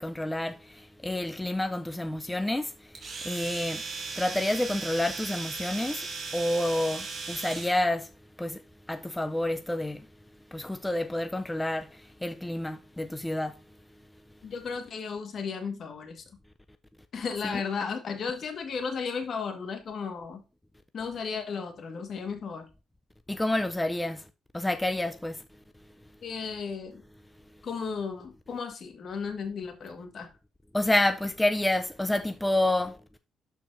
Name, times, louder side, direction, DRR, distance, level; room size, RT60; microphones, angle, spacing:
voice 1, 0.0-2.9 3.2-3.8 4.2-6.1 6.3-8.1 8.4-8.6 8.9-10.0 10.5-13.6 17.4-17.6 23.3-24.2 24.5-25.4 30.7-33.0, left 1 dB, 10° left, 0.5 m, -29 dB
Domestic sounds home sounds, 3.0-7.8, right 4 dB, 45° right, 2.6 m, -37 dB
voice 2, 14.4-16.2 17.1-20.4 20.9-22.7 26.2-27.0 27.6-30.3, left 5 dB, 55° left, 1.6 m, -34 dB
12.0 x 4.6 x 2.6 m
cardioid pair, 90°, 0 cm